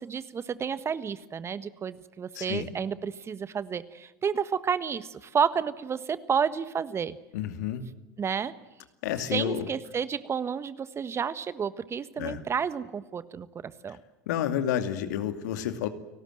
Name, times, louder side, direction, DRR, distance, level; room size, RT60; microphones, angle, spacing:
voice 1, 0.0-7.2 8.2-8.5 9.3-14.0, right 7 dB, 25° right, 14 dB, 1.4 m, -31 dB
voice 2, 2.3-2.7 7.3-7.8 9.0-9.7 12.2-12.4 14.3-15.9, left 10 dB, 70° left, 9 dB, 2.4 m, -30 dB
30.0 x 19.0 x 7.8 m, 1.1 s
hypercardioid pair, 85°, 10 cm